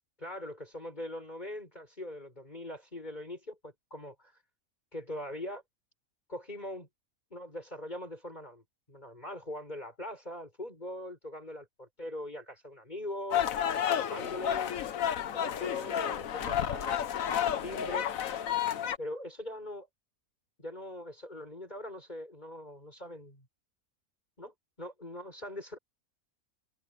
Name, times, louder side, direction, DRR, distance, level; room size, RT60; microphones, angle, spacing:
voice 1, 0.2-4.4 4.9-5.6 6.3-6.9 7.3-13.5 14.0-14.7 15.3-18.1 19.0-19.9 20.6-23.5 24.4-25.8, left 1 dB, 30° left, 6.5 m, -42 dB
sound 1, 13.3-19.0, left 9 dB, 65° left, 1.3 m, -31 dB
omnidirectional pair, 1.5 m